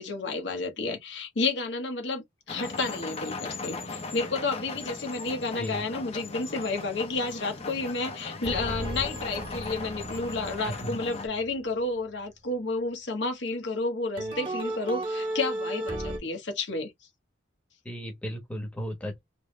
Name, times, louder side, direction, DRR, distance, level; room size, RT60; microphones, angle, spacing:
voice 1, 0.0-16.9, left 3 dB, 65° left, 1.1 m, -31 dB
sound 1, 2.5-11.3, left 3 dB, 30° left, 0.7 m, -38 dB
voice 2, 5.6-5.9 10.6-11.0 17.8-19.2, equal, 5° left, 1.1 m, -35 dB
sound 2, 8.4-11.9 14.2-16.2, right 1 dB, 25° right, 1.1 m, -35 dB
3.4 x 3.1 x 3.1 m
head